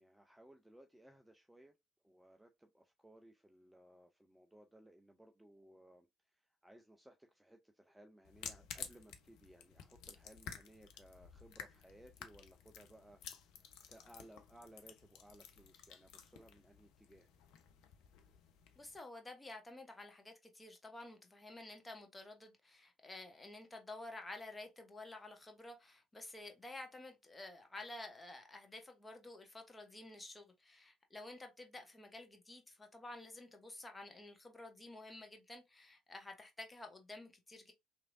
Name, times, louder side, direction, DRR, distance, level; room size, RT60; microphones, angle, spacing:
voice 1, 0.0-1.7 2.0-17.3, right 1 dB, 5° right, 0.4 m, -61 dB
sound 1, 8.2-19.0, left 8 dB, 60° left, 0.4 m, -53 dB
voice 2, 18.8-37.7, left 2 dB, 20° left, 0.9 m, -51 dB
3.0 x 2.5 x 2.5 m
figure-of-eight pair, 50°, 0 cm